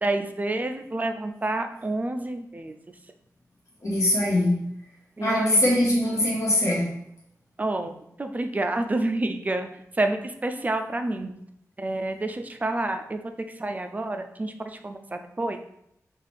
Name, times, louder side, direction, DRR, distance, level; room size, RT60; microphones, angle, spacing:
voice 1, 0.0-2.7 5.2-5.7 7.6-7.9 8.2-9.7 10.0-11.3 11.8-13.2 13.6-14.5 14.8-15.6, right 2 dB, 25° right, 7 dB, 0.4 m, -28 dB
voice 2, 3.8-4.7 5.2-6.9, left 1 dB, 60° left, -6 dB, 1.1 m, -22 dB
5.5 x 2.4 x 3.4 m, 0.74 s
wide cardioid pair, 110°, 6 cm